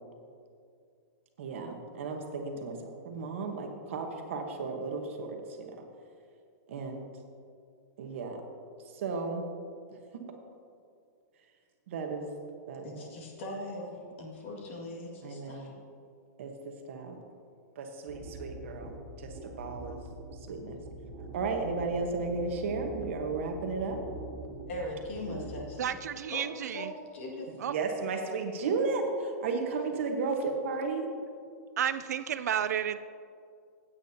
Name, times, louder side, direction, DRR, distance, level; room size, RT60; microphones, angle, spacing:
voice 1, 1.4-5.7 6.7-7.1 8.0-8.4 8.9-9.5 9.9-10.0 10.3-10.4 11.9-12.3 12.7-13.1 15.2-15.7 16.4-17.2 17.8-20.0 20.5-20.8 21.3-24.0 27.6-31.1, right 4 dB, 45° right, 3 dB, 1.1 m, -34 dB
voice 2, 12.8-15.8 24.7-26.0 26.3-27.5, left 1 dB, 45° left, -2 dB, 2.0 m, -40 dB
sound 1, 18.1-25.7, right 2 dB, 20° right, 0.8 m, -44 dB
voice 3, 25.8-26.9 27.6-27.7 31.8-33.0, right 9 dB, 65° right, 12 dB, 0.4 m, -31 dB
16.0 x 8.7 x 2.8 m, 2.3 s
hypercardioid pair, 180°, 9 cm